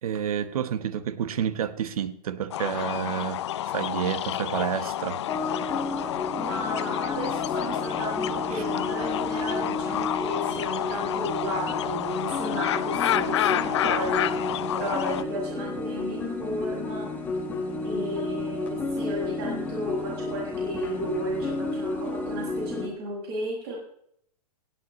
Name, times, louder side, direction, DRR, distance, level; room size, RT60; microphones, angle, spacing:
voice 1, 0.0-5.2 6.0-6.1 8.5-8.6, right 9 dB, 60° right, 1.3 m, -30 dB
sound 1, 2.5-15.2, left 12 dB, 45° left, 0.7 m, -29 dB
sound 2, 5.3-22.9, left 2 dB, 10° left, 1.7 m, -32 dB
voice 2, 6.3-14.3 14.7-17.1 17.8-23.8, right 1 dB, 40° right, 6.1 m, -34 dB
18.5 x 16.5 x 3.2 m
hypercardioid pair, 175°, 20 cm